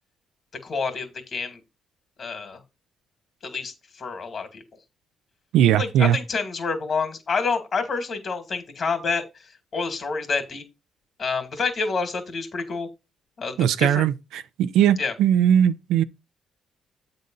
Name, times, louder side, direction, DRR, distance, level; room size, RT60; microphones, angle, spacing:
voice 1, 0.6-1.6 2.2-2.6 3.4-4.6 5.7-9.2 9.7-10.6 11.2-12.9 13.4-14.0 15.0-15.1, left 4 dB, 50° left, 2.3 m, -28 dB
voice 2, 5.5-6.2 13.6-16.0, right 10 dB, 85° right, 0.5 m, -19 dB
8.3 x 3.9 x 5.5 m
cardioid pair, 90°, 0 cm